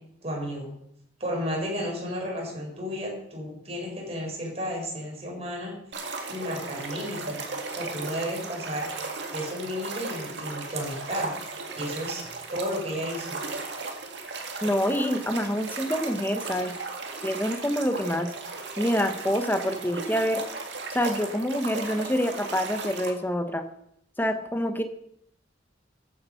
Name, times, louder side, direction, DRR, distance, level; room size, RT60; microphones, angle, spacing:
voice 1, 0.2-0.7 1.2-5.7 6.3-7.4 7.7-8.9 9.3-11.3 11.8-12.2 12.5-13.4, equal, 35° right, -1 dB, 4.6 m, -32 dB
sound 1, 5.9-23.1, right 3 dB, 65° right, 2.1 m, -36 dB
voice 2, 14.6-16.7 17.2-18.3 18.8-20.4 20.9-23.6 24.2-24.8, equal, 10° left, 8 dB, 1.0 m, -26 dB
14.0 x 8.7 x 5.7 m, 0.74 s
head